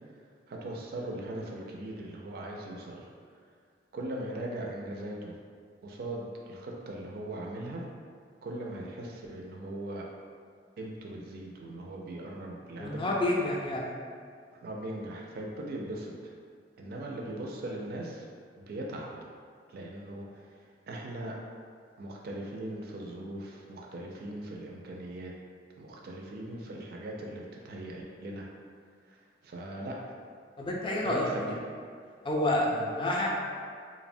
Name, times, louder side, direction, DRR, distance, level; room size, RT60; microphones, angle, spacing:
voice 1, 0.5-3.1 3.9-5.4 5.8-7.9 8.4-10.1 10.8-13.1 14.5-16.3 16.8-18.3 18.6-19.1 19.7-21.4 22.0-25.3 25.8-28.5 29.1-30.0 31.0-31.6 32.6-32.9, right 1 dB, 55° right, -1 dB, 0.3 m, -39 dB
voice 2, 12.8-13.9 30.6-31.3 32.2-33.3, left 1 dB, 30° left, -3 dB, 0.3 m, -29 dB
2.8 x 2.0 x 2.6 m, 2.1 s
head